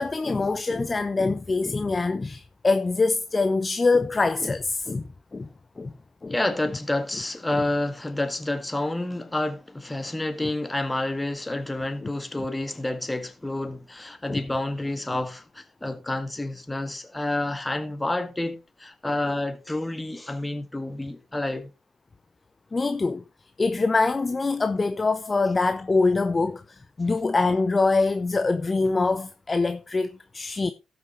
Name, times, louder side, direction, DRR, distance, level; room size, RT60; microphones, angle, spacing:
voice 1, 0.0-5.0 5.3-5.5 5.8-5.9 6.2-6.3 10.4-10.5 14.3-14.4 22.7-23.2 23.6-30.7, left 3 dB, 30° left, 0.8 m, -24 dB
voice 2, 6.3-21.7, left 1 dB, 15° left, 1.8 m, -29 dB
18.0 x 6.1 x 3.1 m
figure-of-eight pair, 40°, 0 cm